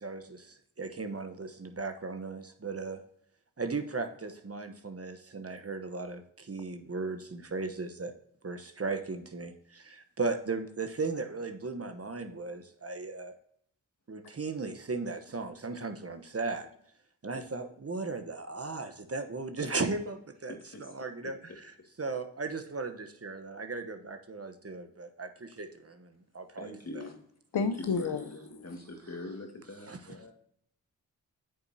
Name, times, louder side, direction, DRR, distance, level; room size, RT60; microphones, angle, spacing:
voice 1, 0.0-3.0 3.6-8.1 8.4-13.4 14.1-16.7 17.2-20.5 20.8-21.7 22.0-26.7 27.0-27.1 29.9-30.0, right 3 dB, 35° right, 8 dB, 1.1 m, -36 dB
voice 2, 20.5-20.9 21.2-21.9 26.6-27.2 27.5-30.3, left 2 dB, 40° left, 3 dB, 2.1 m, -44 dB
voice 3, 27.5-28.3 28.5-28.6, left 5 dB, 70° left, 8 dB, 0.8 m, -30 dB
8.7 x 7.0 x 2.8 m, 0.66 s
cardioid pair, 50°, 40 cm